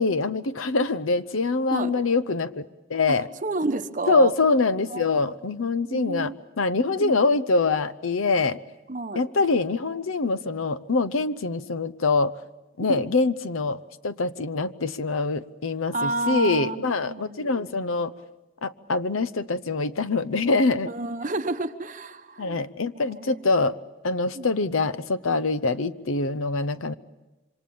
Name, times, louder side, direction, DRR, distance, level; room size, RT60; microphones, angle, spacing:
voice 1, 0.0-2.6 2.9-3.3 4.1-8.6 9.1-12.3 12.8-18.1 18.6-20.9 22.4-23.7 24.0-26.9, left 3 dB, 85° left, 15 dB, 0.8 m, -24 dB
voice 2, 3.4-4.3 4.9-5.3 5.9-6.4 7.0-7.2 8.9-9.3 12.9-13.0 15.9-17.7 20.9-22.6 23.0-23.4 24.3-24.5, right 2 dB, 40° right, 8 dB, 1.1 m, -30 dB
27.0 x 25.0 x 7.1 m, 1.1 s
head